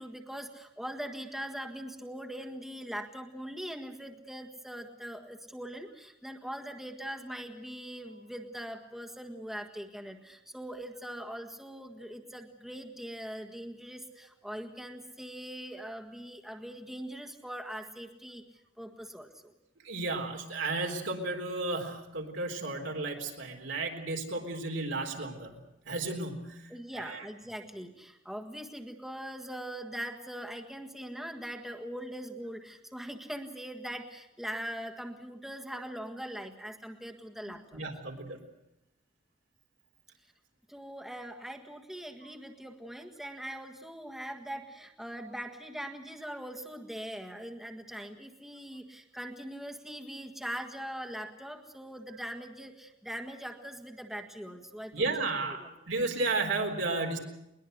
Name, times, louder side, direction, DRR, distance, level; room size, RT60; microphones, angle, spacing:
voice 1, 0.0-18.4 18.8-19.5 26.7-37.8 40.7-55.7, equal, ahead, 4 dB, 1.7 m, -41 dB
voice 2, 19.8-25.6 25.9-26.7 27.0-27.2 37.5-38.4 54.9-57.2, right 3 dB, 75° right, 2 dB, 4.0 m, -33 dB
21.5 x 20.5 x 8.0 m, 0.84 s
head